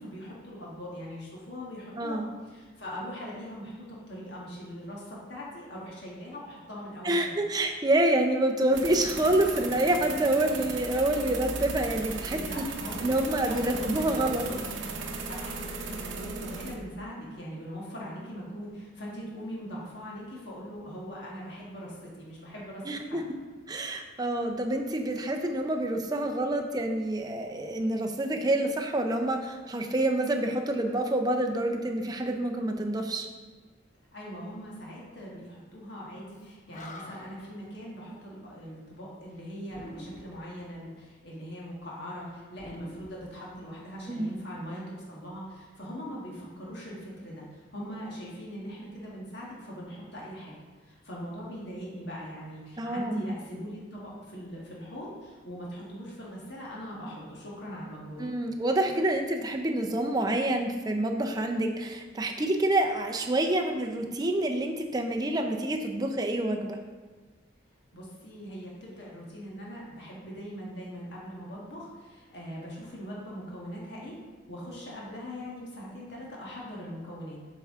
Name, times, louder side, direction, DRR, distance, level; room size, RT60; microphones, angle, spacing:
voice 1, 0.0-7.5 12.3-13.1 13.4-14.8 15.3-23.3 34.1-58.2 67.9-74.1 74.5-77.4, equal, 60° left, -4 dB, 1.4 m, -41 dB
voice 2, 7.0-12.6 13.0-14.5 22.9-23.2 23.7-33.3 44.1-44.3 52.8-53.3 58.2-66.8, right 1 dB, 20° right, 3 dB, 0.5 m, -27 dB
sound 1, 8.7-16.8, right 4 dB, 70° right, 0.7 m, -37 dB
Animal, 36.4-36.5 36.7-37.5 39.7-40.5 42.5-43.9, left 1 dB, 40° left, 0.6 m, -46 dB
7.7 x 4.6 x 3.6 m, 1.4 s
head